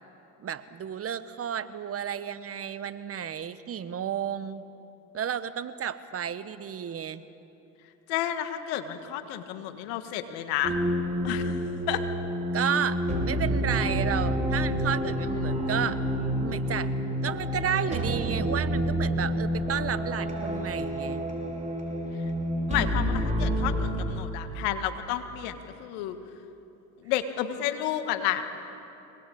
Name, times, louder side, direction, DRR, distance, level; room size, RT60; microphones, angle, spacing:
voice 1, 0.4-4.6 5.1-7.2 12.5-16.0 16.3-16.9 17.2-21.2, right 8 dB, 40° right, 12 dB, 1.3 m, -32 dB
voice 2, 8.1-10.8 11.2-11.6 11.9-12.0 22.7-26.2 27.0-28.4, left 11 dB, 80° left, 8 dB, 1.8 m, -31 dB
sound 1, 10.6-23.9, equal, 20° right, 5.4 m, -28 dB
25.0 x 19.5 x 8.6 m, 3.0 s
supercardioid pair, 80°, 35 cm